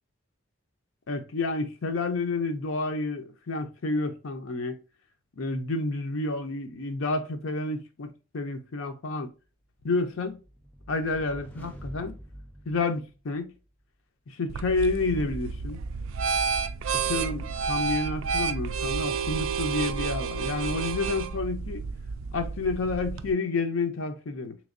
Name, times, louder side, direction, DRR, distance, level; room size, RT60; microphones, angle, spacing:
voice 1, 1.1-4.8 5.4-9.3 9.8-10.4 10.9-12.1 12.7-13.5 14.3-15.8 17.0-21.8 22.3-24.6, left 3 dB, 75° left, 0.5 m, -30 dB
sound 1, 9.8-13.6, equal, 10° left, 0.4 m, -46 dB
sound 2, 14.5-23.3, right 5 dB, 75° right, 0.3 m, -30 dB
3.5 x 3.0 x 2.5 m
head